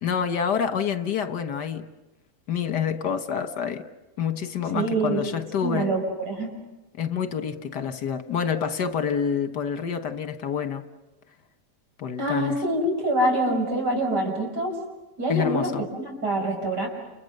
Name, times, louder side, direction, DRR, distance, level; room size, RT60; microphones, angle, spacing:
voice 1, 0.0-1.9 2.5-3.9 4.2-5.9 7.0-10.8 12.0-12.6 15.3-15.8, left 7 dB, 80° left, 1.9 m, -27 dB
voice 2, 4.7-5.2 5.6-6.5 12.2-14.7 15.2-16.9, right 1 dB, 80° right, 6.5 m, -25 dB
29.5 x 29.5 x 6.7 m
omnidirectional pair, 1.8 m